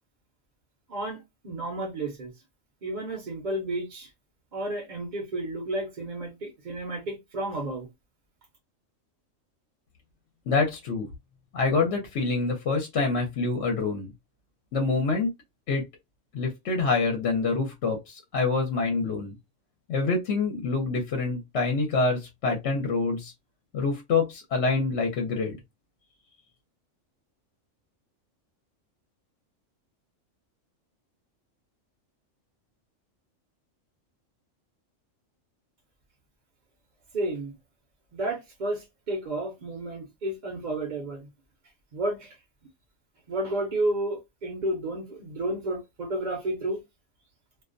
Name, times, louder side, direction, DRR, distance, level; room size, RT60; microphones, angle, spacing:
voice 1, 0.9-2.3 2.8-4.1 4.5-7.9 37.1-37.5 38.1-41.3 41.9-42.4 43.3-46.8, right 1 dB, 45° right, 0.6 m, -31 dB
voice 2, 10.5-11.1 11.5-14.1 14.7-15.3 15.7-15.8 16.3-19.3 19.9-23.3 23.7-25.6, left 4 dB, 65° left, 0.9 m, -26 dB
2.4 x 2.1 x 2.4 m
omnidirectional pair, 1.3 m